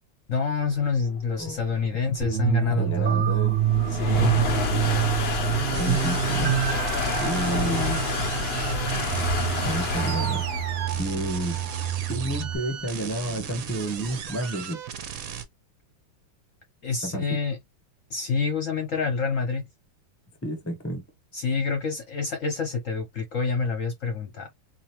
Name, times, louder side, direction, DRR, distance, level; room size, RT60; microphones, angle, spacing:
voice 1, 0.3-3.3 3.9-4.4 16.8-17.6 18.1-19.7 21.3-24.5, left 5 dB, 55° left, 0.9 m, -27 dB
sound 1, 1.0-14.3, left 4 dB, 75° left, 0.5 m, -29 dB
sound 2, 2.2-12.6, right 12 dB, 80° right, 0.5 m, -27 dB
voice 2, 2.7-3.6 4.1-4.4 5.8-6.6 7.2-8.0 9.6-10.4 11.0-11.6 12.1-14.8 17.0-17.2 20.4-21.0, right 1 dB, 15° left, 0.4 m, -30 dB
sound 3, 5.7-15.4, right 8 dB, 60° right, 0.9 m, -37 dB
3.8 x 2.9 x 3.0 m
omnidirectional pair, 2.2 m